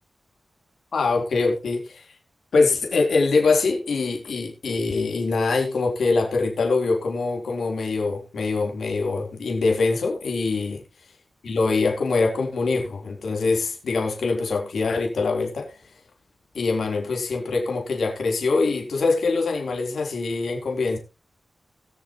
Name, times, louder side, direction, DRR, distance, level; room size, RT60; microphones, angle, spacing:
voice 1, 0.9-2.1 2.5-10.8 11.4-15.8 16.5-21.0, left 3 dB, 85° left, 1 dB, 3.7 m, -23 dB
21.0 x 7.1 x 3.1 m, 0.29 s
wide cardioid pair, 80°, 0 cm